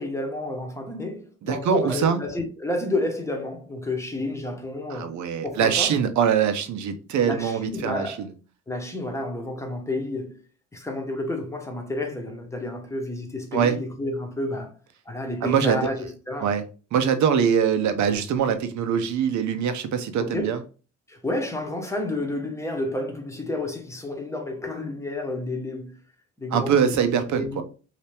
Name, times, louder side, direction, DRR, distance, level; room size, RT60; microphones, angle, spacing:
voice 1, 0.0-5.1 5.4-6.0 7.3-8.3 8.7-10.4 10.7-14.7 15.1-16.5 20.2-20.6 21.1-26.0 26.4-27.6, left 2 dB, 10° left, 1.0 m, -30 dB
voice 2, 1.5-2.2 4.9-8.3 13.5-13.8 15.4-15.8 16.4-16.6 16.9-20.6 26.5-27.6, right 7 dB, 70° right, 0.7 m, -23 dB
2.8 x 2.8 x 3.3 m
cardioid pair, 90°, 30 cm